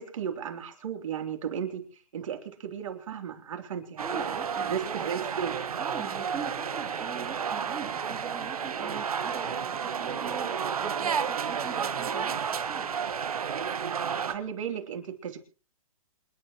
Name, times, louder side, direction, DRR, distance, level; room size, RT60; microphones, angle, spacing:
voice 1, 0.0-1.8 2.1-4.2 4.7-5.6 14.2-15.4, right 8 dB, 60° right, 5 dB, 3.3 m, -35 dB
voice 2, 4.0-4.8 5.8-12.9, right 6 dB, 15° right, 0 dB, 2.5 m, -42 dB
sound 1, 4.0-14.3, right 7 dB, 80° right, 1.4 m, -31 dB
27.5 x 10.5 x 3.1 m, 0.35 s
hypercardioid pair, 145°, 18 cm